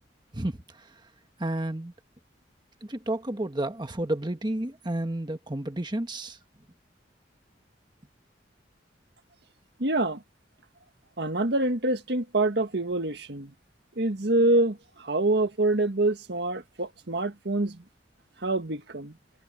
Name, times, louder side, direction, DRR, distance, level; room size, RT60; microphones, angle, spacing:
voice 1, 0.3-0.9 1.4-1.9 2.8-6.4, right 1 dB, 25° right, 1.4 m, -31 dB
voice 2, 9.8-10.2 11.2-13.5 14.0-17.8 18.4-19.1, right 2 dB, 65° right, 1.7 m, -26 dB
head